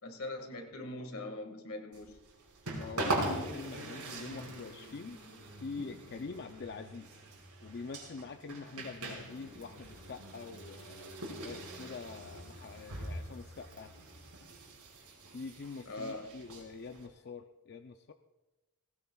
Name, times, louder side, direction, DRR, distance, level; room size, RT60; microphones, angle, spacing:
voice 1, 0.0-2.2 15.9-16.4, left 2 dB, 75° left, 5 dB, 1.9 m, -42 dB
sound 1, 1.9-17.1, right 2 dB, 90° right, 4.9 m, -42 dB
voice 2, 2.7-5.2 5.6-7.1 7.6-11.1 11.4-13.9 15.3-18.1, left 4 dB, 45° left, 6 dB, 0.5 m, -45 dB
19.5 x 19.0 x 2.3 m, 1.1 s
head